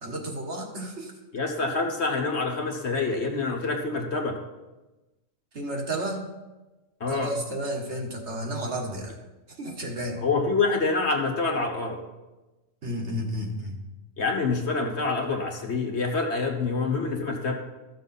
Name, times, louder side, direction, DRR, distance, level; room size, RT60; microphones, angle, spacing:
voice 1, 0.0-1.1 5.5-6.2 7.1-9.2 9.6-10.2 12.8-13.8, right 1 dB, 55° right, 1 dB, 1.6 m, -32 dB
voice 2, 1.3-4.4 7.0-7.3 10.2-12.0 14.2-17.5, left 3 dB, 55° left, 2 dB, 1.4 m, -26 dB
13.5 x 6.5 x 4.2 m, 1.1 s
omnidirectional pair, 1.4 m